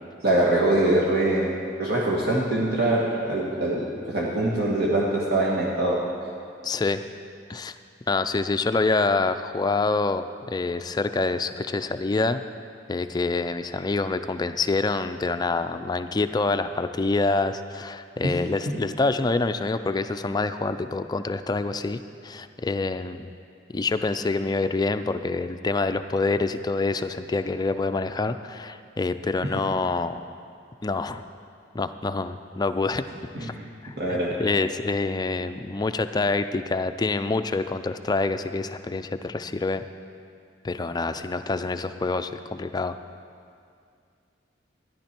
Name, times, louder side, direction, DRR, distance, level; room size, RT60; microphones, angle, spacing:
voice 1, 0.2-6.0 18.2-18.3 18.7-18.8 33.3-33.6 34.0-34.3, right 1 dB, 60° right, -5 dB, 1.6 m, -23 dB
voice 2, 6.6-7.0 7.5-7.8 8.1-12.4 12.9-23.3 23.7-30.3 30.8-31.2 31.7-33.0 33.4-33.5 33.8-39.8 40.6-43.0, left 3 dB, 20° left, 9 dB, 0.4 m, -26 dB
13.5 x 11.0 x 4.5 m, 2.3 s
head